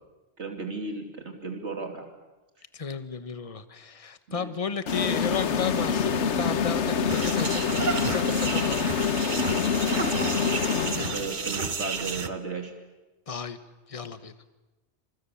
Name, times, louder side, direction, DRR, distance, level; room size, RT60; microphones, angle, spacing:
voice 1, 0.4-2.0 4.3-4.5 9.9-12.7, right 3 dB, 85° right, 3 dB, 3.1 m, -35 dB
voice 2, 2.7-8.9 11.0-11.3 13.3-13.6 13.9-14.3, left 5 dB, 30° left, 11 dB, 1.3 m, -33 dB
sound 1, 4.9-11.5, left 6 dB, 85° left, 1.4 m, -26 dB
sound 2, 7.1-12.3, right 5 dB, 45° right, 1.2 m, -32 dB
29.0 x 27.0 x 7.2 m, 1.1 s
omnidirectional pair, 1.1 m